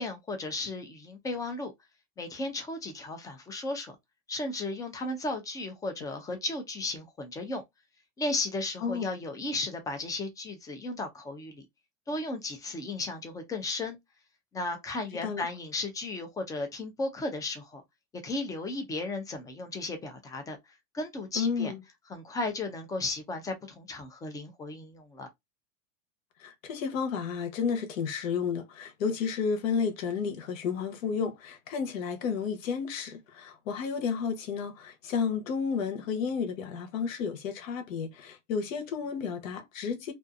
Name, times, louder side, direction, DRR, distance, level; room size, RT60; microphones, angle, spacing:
voice 1, 0.0-1.7 2.2-3.9 4.3-7.6 8.2-11.7 12.1-14.0 14.5-17.8 18.2-20.6 20.9-21.7 22.1-25.3, left 2 dB, 10° left, 0.3 m, -35 dB
voice 2, 21.3-21.8 26.4-40.1, left 6 dB, 80° left, 1.0 m, -32 dB
2.6 x 2.3 x 2.4 m
supercardioid pair, 125°, 39 cm